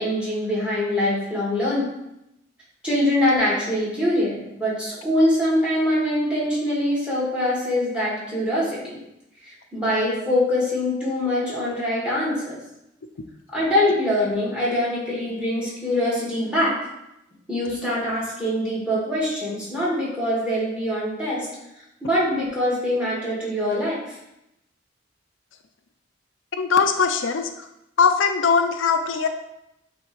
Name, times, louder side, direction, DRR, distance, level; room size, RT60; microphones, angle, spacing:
voice 1, 0.0-1.9 2.8-9.0 9.4-12.6 13.5-16.8 17.5-21.5 22.0-24.2, left 1 dB, 5° right, -6 dB, 2.1 m, -23 dB
voice 2, 26.6-27.7 28.0-29.3, left 5 dB, 80° left, 6 dB, 0.5 m, -20 dB
8.3 x 3.4 x 3.3 m, 0.85 s
head